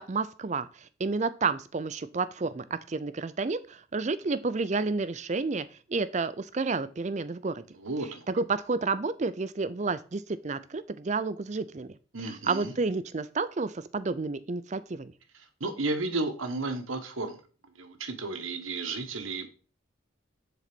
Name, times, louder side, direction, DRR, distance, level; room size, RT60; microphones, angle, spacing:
voice 1, 0.0-7.6 8.3-11.9 12.2-15.1, right 4 dB, 35° right, 14 dB, 0.4 m, -30 dB
voice 2, 7.8-8.2 12.1-12.7 15.6-17.4 17.8-19.5, right 3 dB, 85° right, 7 dB, 1.2 m, -33 dB
7.3 x 4.0 x 6.0 m, 0.38 s
head